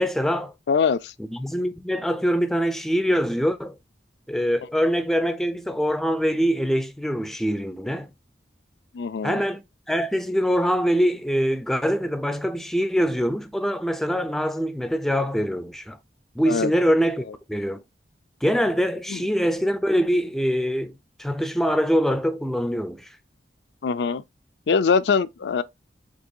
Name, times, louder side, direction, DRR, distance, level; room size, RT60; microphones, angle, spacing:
voice 1, 0.0-0.5 1.2-3.8 4.3-8.1 9.2-16.0 16.4-17.8 18.4-23.2, equal, ahead, 0.4 m, -24 dB
voice 2, 0.7-1.1 8.9-9.4 16.5-16.7 19.1-19.2 23.8-24.2 24.7-25.6, left 5 dB, 70° left, 0.4 m, -22 dB
5.3 x 3.6 x 2.7 m
head